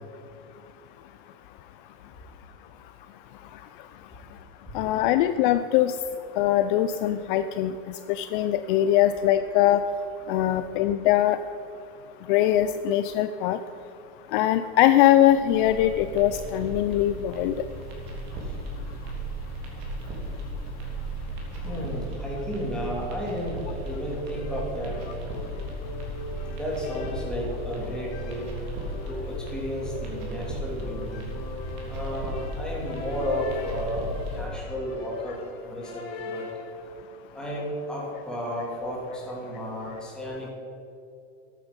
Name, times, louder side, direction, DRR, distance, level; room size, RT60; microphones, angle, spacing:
voice 1, 4.7-5.9 6.4-7.7 8.1-9.8 10.3-11.4 12.3-13.6 14.3-17.5, left 12 dB, 50° left, 10 dB, 0.5 m, -22 dB
sound 1, 15.2-34.5, right 1 dB, 50° right, 3.1 m, -35 dB
voice 2, 21.6-25.0 26.5-28.5 29.1-31.3 31.9-35.4 35.6-36.4 37.3-40.5, equal, ahead, -5 dB, 2.9 m, -33 dB
sound 2, 24.2-36.8, left 2 dB, 70° left, 2.3 m, -41 dB
13.0 x 9.4 x 5.3 m, 2.7 s
supercardioid pair, 155°, 32 cm